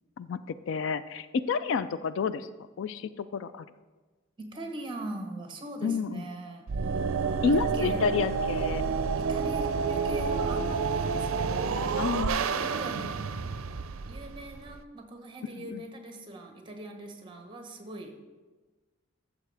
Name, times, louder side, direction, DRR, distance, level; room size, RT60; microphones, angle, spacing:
voice 1, 0.7-2.5 2.8-3.6 5.8-6.2 7.4-8.8 12.0-12.6 15.6-15.8, left 5 dB, 65° left, 14 dB, 0.3 m, -29 dB
voice 2, 4.4-6.7 7.5-8.1 9.2-12.0 12.5-13.1 14.1-18.2, right 1 dB, 25° right, 4 dB, 1.0 m, -41 dB
sound 1, 6.7-14.8, right 5 dB, 80° right, 0.4 m, -29 dB
13.0 x 7.0 x 3.4 m, 1.3 s
head